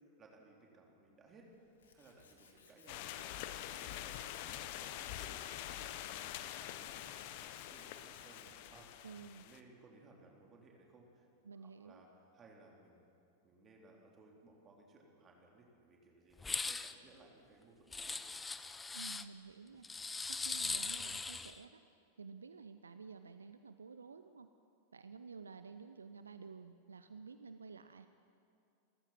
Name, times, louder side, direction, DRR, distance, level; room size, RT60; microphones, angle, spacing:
voice 1, 0.2-1.7 1.9-4.3 4.8-5.4 5.8-7.0 7.4-8.9 9.4-12.1 12.3-13.1 13.4-18.2, right 3 dB, 25° right, -1 dB, 4.0 m, -62 dB
Tools, 1.3-8.7, left 5 dB, 65° left, 2.4 m, -66 dB
sound 1, 2.9-9.6, left 12 dB, 50° left, 1.0 m, -45 dB
voice 2, 9.0-9.5 11.4-12.0 18.9-21.8 22.2-24.5 24.9-28.1, right 5 dB, 75° right, 10 dB, 0.6 m, -52 dB
sound 2, 16.4-16.9 17.9-19.2 19.8-21.6, left 4 dB, 10° left, 0.7 m, -40 dB
29.5 x 15.0 x 6.1 m, 2.5 s
figure-of-eight pair, 90°, 0 cm